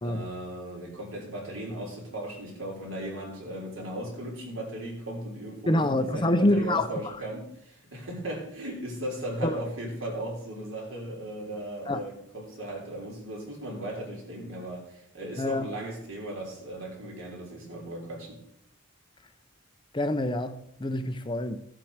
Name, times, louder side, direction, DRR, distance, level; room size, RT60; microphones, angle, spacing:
voice 1, 0.0-5.8 6.1-18.4, right 1 dB, 75° right, 3.6 m, -37 dB
voice 2, 5.7-6.9 9.4-9.6 11.9-12.0 15.4-15.7 19.9-21.6, left 1 dB, 25° left, 0.6 m, -26 dB
14.0 x 7.5 x 4.7 m
head